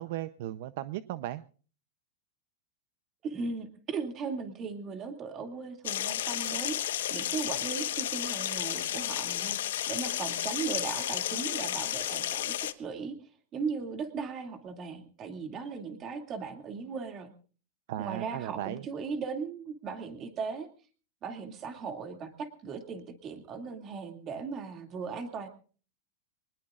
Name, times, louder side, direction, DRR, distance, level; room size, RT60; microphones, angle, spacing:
voice 1, 0.0-1.4 17.9-18.8, right 13 dB, 55° right, 13 dB, 0.7 m, -36 dB
voice 2, 3.2-9.6 9.9-13.2 13.5-17.3 18.0-20.7 21.2-25.5, right 5 dB, 25° right, 6 dB, 2.4 m, -37 dB
sound 1, 5.8-12.7, left 12 dB, 85° left, 1.2 m, -32 dB
24.5 x 20.0 x 2.5 m, 0.40 s
supercardioid pair, 165°, 0 cm